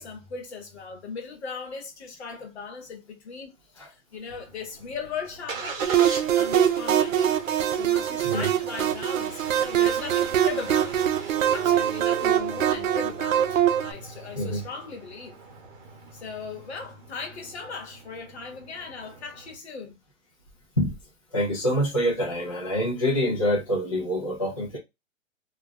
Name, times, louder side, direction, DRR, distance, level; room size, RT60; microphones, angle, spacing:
voice 1, 0.0-5.9 6.2-11.0 11.5-15.4 16.1-20.0, left 5 dB, 55° left, 1.0 m, -38 dB
Engine starting, 4.3-19.6, right 4 dB, 40° right, 1.0 m, -41 dB
sound 1, 5.8-13.9, right 10 dB, 70° right, 0.6 m, -23 dB
voice 2, 8.2-8.6 14.0-14.7 20.8-21.0 21.3-24.8, equal, 25° left, 0.4 m, -26 dB
2.4 x 2.1 x 3.5 m
hypercardioid pair, 165°, 40 cm